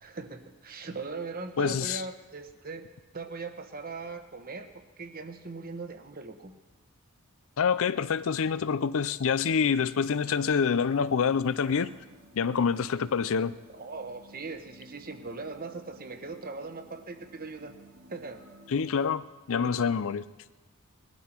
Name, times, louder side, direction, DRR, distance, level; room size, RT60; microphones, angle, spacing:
voice 1, 0.0-2.9 3.1-6.5 13.7-17.7 18.1-18.5, right 3 dB, 40° right, 7 dB, 1.1 m, -40 dB
voice 2, 1.6-2.0 7.6-11.9 12.3-13.6 18.7-20.2, left 6 dB, 65° left, 15 dB, 0.5 m, -26 dB
sound 1, 9.4-19.1, right 1 dB, 85° right, 2.9 m, -55 dB
20.0 x 13.0 x 4.5 m, 1.2 s
head